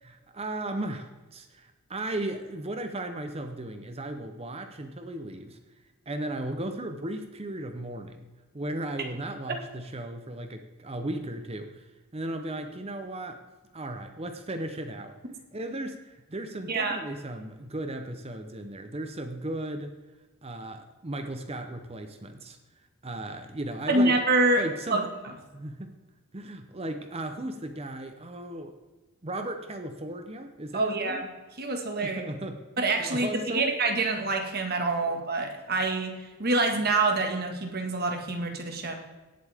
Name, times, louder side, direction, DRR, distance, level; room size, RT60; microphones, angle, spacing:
voice 1, 0.0-5.6 6.1-8.3 8.5-11.9 12.1-13.4 13.7-15.2 15.5-19.9 20.4-22.6 23.0-24.2 24.6-25.0 25.5-25.9 26.3-28.7 29.2-31.2 32.0-32.6 33.0-33.7 35.1-35.2, right 1 dB, 25° right, 7 dB, 0.7 m, -36 dB
voice 2, 23.9-24.6 24.9-25.1 30.7-31.3 31.6-32.2 32.8-36.1 36.4-38.9, right 2 dB, 45° right, 3 dB, 1.7 m, -26 dB
17.5 x 8.2 x 3.5 m, 1.2 s
head